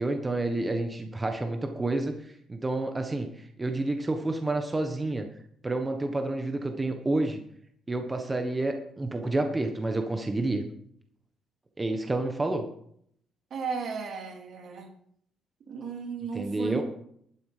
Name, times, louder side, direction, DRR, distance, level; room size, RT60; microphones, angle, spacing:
voice 1, 0.0-5.3 5.6-7.4 7.9-10.6 11.8-12.6 16.3-16.8, right 2 dB, 20° right, 5 dB, 1.3 m, -29 dB
voice 2, 13.5-14.9 15.7-16.8, right 5 dB, 65° right, 4 dB, 2.4 m, -35 dB
12.0 x 9.0 x 5.1 m, 0.69 s
cardioid pair, 90°, 0 cm